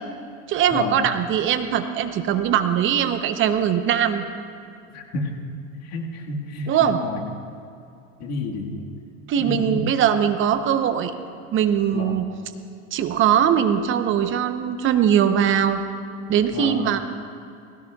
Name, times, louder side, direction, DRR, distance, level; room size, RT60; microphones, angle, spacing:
voice 1, 0.5-4.2 6.7-7.0 9.3-11.1 11.5-12.3 12.9-15.8 16.3-17.0, right 9 dB, 30° right, 9 dB, 0.8 m, -21 dB
voice 2, 4.9-5.3 5.9-7.2 8.2-8.9 9.4-9.8 11.9-12.1 16.5-16.8, left 3 dB, 40° left, 0 dB, 1.8 m, -30 dB
19.0 x 17.0 x 2.4 m, 2.5 s
hypercardioid pair, 115°, 41 cm